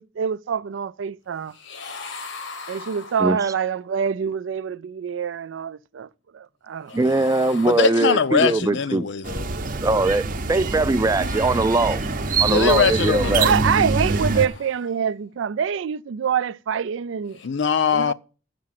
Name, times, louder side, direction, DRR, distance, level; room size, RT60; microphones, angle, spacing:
voice 1, 0.0-1.6 2.7-6.1 6.3-6.9 13.4-17.4 17.9-18.1, right 7 dB, 85° right, 0.4 m, -25 dB
sound 1, 1.5-3.6 6.9-8.5 10.9-12.5 13.8-15.2 17.2-17.5, left 4 dB, 85° left, 1.2 m, -41 dB
voice 2, 6.9-9.0 9.8-10.2 10.5-12.0 12.4-13.5, right 2 dB, 20° right, 0.3 m, -21 dB
voice 3, 7.7-9.6 12.5-13.6 17.4-18.1, left 6 dB, 70° left, 0.5 m, -22 dB
sound 2, 9.2-14.5, right 3 dB, 45° right, 0.7 m, -25 dB
7.5 x 6.0 x 7.5 m
head